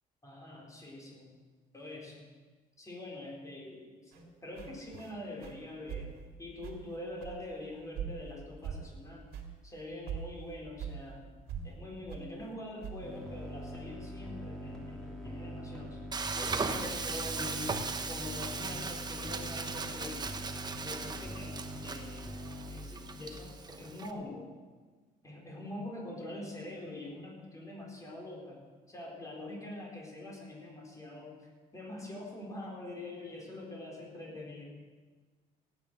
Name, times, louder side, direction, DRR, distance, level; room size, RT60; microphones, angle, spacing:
voice 1, 0.2-1.3 1.7-2.2 2.8-6.1 6.4-9.2 9.6-11.3 11.6-16.1 16.3-20.2 20.8-22.3 22.7-24.5 25.2-28.6 28.9-31.4 31.7-34.7, left 1 dB, 20° left, -2 dB, 4.4 m, -44 dB
sound 1, 4.1-4.2 4.6-5.1 5.4-5.6 5.9-6.3 6.6-6.9 7.2-7.6 7.9-8.4 8.6-9.0 9.3-9.5 9.8-9.9 10.1-11.0 11.5-11.7 12.1-12.3 12.8-13.3 13.6-13.7, right 8 dB, 85° right, 2.3 m, -41 dB
sound 2, 13.0-23.4, equal, 5° left, 3.0 m, -43 dB
Frying (food), 16.1-24.1, right 4 dB, 25° right, 1.0 m, -38 dB
16.5 x 9.8 x 6.2 m, 1.4 s
cardioid pair, 110°, 16 cm